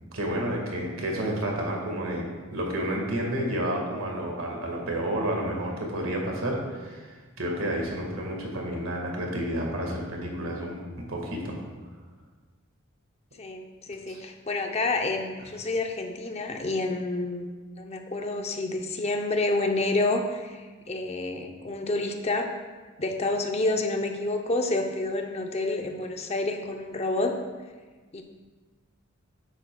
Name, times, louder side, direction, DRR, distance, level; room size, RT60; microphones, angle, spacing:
voice 1, 0.1-7.1 7.4-11.6 14.1-14.2, right 1 dB, 90° right, 0 dB, 1.8 m, -30 dB
voice 2, 13.4-22.5 23.0-27.4 28.1-28.2, left 2 dB, 30° left, 4 dB, 0.6 m, -29 dB
10.0 x 7.7 x 2.3 m, 1.4 s
head